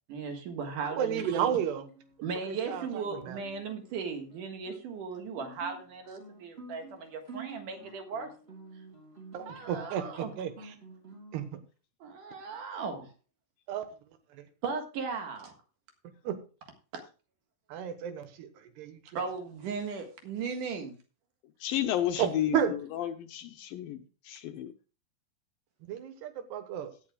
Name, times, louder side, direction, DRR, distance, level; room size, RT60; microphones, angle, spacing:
voice 1, 0.1-1.5 2.2-8.3 9.5-10.3 10.6-10.7 12.0-13.1 14.6-15.6 16.9-17.0 19.1-21.0, right 5 dB, 60° right, 5 dB, 2.9 m, -37 dB
voice 2, 1.0-1.8 2.7-2.8 9.3-10.0 10.4-10.5 11.3-11.4 13.7-13.8 16.3-16.4 17.7-18.5 18.8-19.0 22.2-22.7 25.9-26.9, right 9 dB, 85° right, 9 dB, 3.4 m, -31 dB
Guitar, 1.7-11.5, right 4 dB, 15° right, 3.3 m, -50 dB
voice 3, 21.6-24.0 24.3-24.7, left 11 dB, 75° left, 7 dB, 2.2 m, -32 dB
16.5 x 9.6 x 2.3 m, 0.35 s
omnidirectional pair, 4.6 m